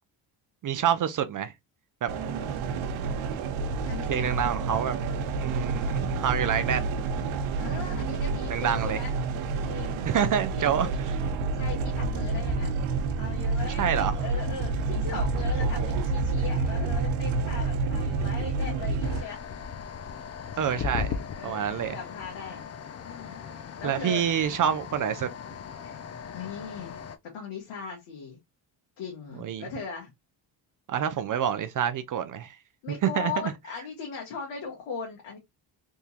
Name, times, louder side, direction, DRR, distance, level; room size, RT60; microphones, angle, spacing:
voice 1, 0.6-1.5 2.0-2.1 4.1-5.0 5.4-6.9 8.5-9.0 10.1-11.2 13.7-14.2 15.6-15.9 20.6-22.0 23.8-25.3 29.4-29.7 30.9-32.6 32.9-33.3, right 9 dB, 45° right, 0.4 m, -27 dB
sound 1, 2.1-19.2, right 3 dB, 70° right, 0.8 m, -29 dB
voice 2, 3.9-4.5 5.9-6.4 7.6-9.1 9.7-10.0 10.5-10.7 11.5-12.8 13.2-19.4 20.5-20.6 21.4-22.6 23.0-23.4 23.8-24.2 25.8-26.1 26.3-27.0 27.3-28.4 29.0-30.1 32.8-35.4, left 5 dB, 90° left, 1.5 m, -39 dB
sound 2, 19.0-27.2, left 7 dB, 35° left, 0.5 m, -38 dB
3.6 x 2.8 x 2.7 m
cardioid pair, 115°, 49 cm